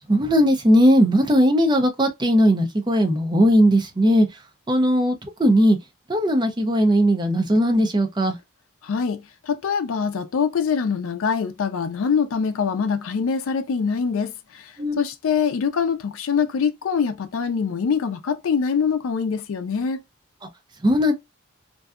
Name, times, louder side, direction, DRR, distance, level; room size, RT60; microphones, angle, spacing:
voice 1, 0.1-4.3 4.7-5.8 6.1-8.4 14.8-15.0 20.8-21.1, equal, 20° right, 0.4 m, -18 dB
voice 2, 8.8-9.2 9.4-14.6 15.0-20.0, left 6 dB, 75° left, 0.4 m, -24 dB
2.6 x 2.2 x 2.3 m
head